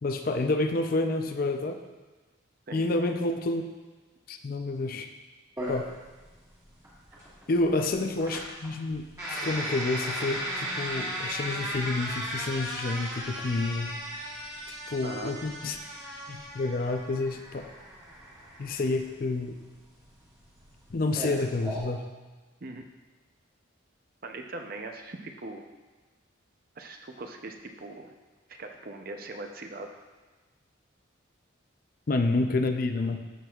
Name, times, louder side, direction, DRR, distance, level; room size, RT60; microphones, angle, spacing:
voice 1, 0.0-1.8 2.7-3.6 4.3-5.1 5.7-5.9 7.5-13.9 14.9-15.8 16.3-17.7 18.6-19.5 20.9-22.0 32.1-33.2, left 2 dB, 45° left, 6 dB, 0.4 m, -29 dB
sound 1, 5.6-21.8, equal, 15° right, 1.5 m, -37 dB
voice 2, 15.0-15.3 22.6-22.8 24.2-25.6 26.8-28.1 28.6-30.0, right 2 dB, 45° right, 4 dB, 0.6 m, -40 dB
13.0 x 6.1 x 2.4 m, 1.3 s
head